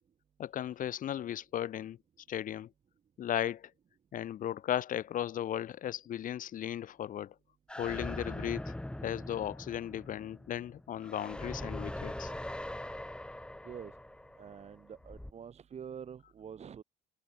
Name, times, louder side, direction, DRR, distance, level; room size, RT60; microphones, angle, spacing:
voice 1, 0.4-2.0 2.3-2.7 3.2-3.7 4.1-7.3 7.8-8.7 9.0-12.3, left 11 dB, 55° left, 1.1 m, -36 dB
sound 1, 7.7-15.3, left 1 dB, 5° left, 4.1 m, -42 dB
voice 2, 13.6-14.0 14.4-16.8, right 7 dB, 40° right, 2.3 m, -46 dB
cardioid pair, 110°, 17 cm